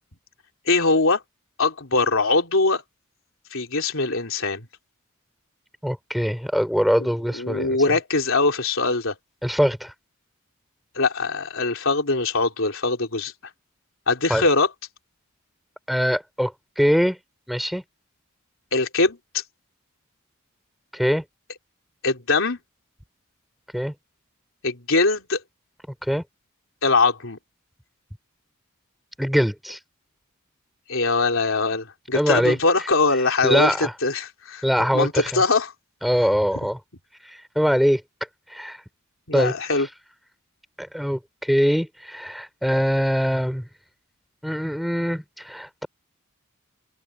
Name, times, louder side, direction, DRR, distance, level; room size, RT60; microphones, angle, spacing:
voice 1, 0.7-1.2 1.6-2.8 3.5-4.7 7.0-9.1 11.0-13.3 14.1-14.7 18.7-19.4 22.0-22.6 24.6-25.4 26.8-27.4 30.9-34.6 34.9-35.7 39.3-39.9, left 3 dB, 65° left, 3.8 m, -22 dB
voice 2, 5.8-7.8 9.4-9.9 14.3-14.4 15.9-17.2 17.5-17.8 20.9-21.2 23.7-23.9 26.1-26.2 29.2-29.8 32.1-32.6 33.4-33.9 34.6-35.4 36.0-36.8 37.5-38.0 38.5-38.8 39.3-39.5 40.8-43.6 44.4-45.9, equal, ahead, 4.8 m, -22 dB
open air
head